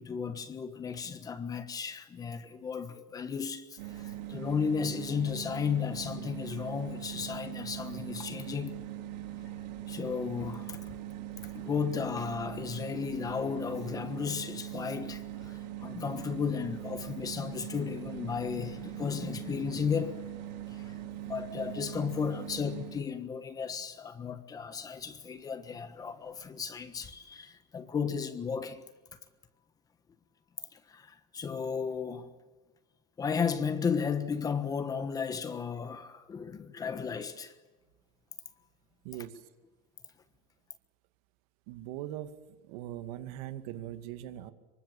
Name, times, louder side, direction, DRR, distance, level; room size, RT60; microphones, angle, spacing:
voice 1, 0.0-8.8 9.9-11.0 11.4-20.2 20.7-28.8 30.7-32.3 33.2-37.5, left 6 dB, 15° left, 1.3 m, -34 dB
sound 1, 3.8-23.1, right 12 dB, 90° right, 3.2 m, -41 dB
voice 2, 39.0-39.4 41.7-42.3 42.6-44.5, right 13 dB, 60° right, 2.2 m, -40 dB
26.5 x 24.0 x 7.4 m
supercardioid pair, 165°, 21 cm